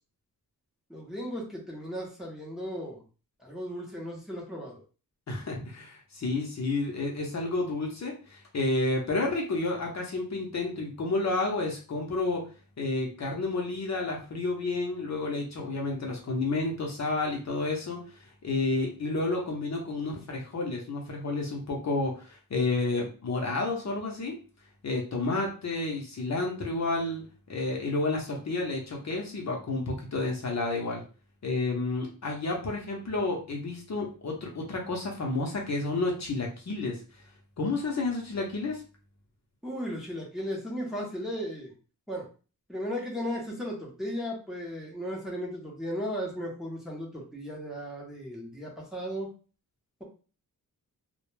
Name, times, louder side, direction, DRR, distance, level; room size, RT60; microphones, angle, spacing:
voice 1, 0.9-3.0 3.4-4.8 39.6-41.7 42.1-42.3 42.7-49.3, equal, ahead, -3 dB, 0.7 m, -36 dB
voice 2, 5.3-12.4 12.8-18.0 18.4-24.4 24.8-31.0 31.4-37.0 37.6-38.8, left 2 dB, 50° left, -1 dB, 0.6 m, -30 dB
2.2 x 2.1 x 3.0 m, 0.36 s
wide cardioid pair, 125°, 37 cm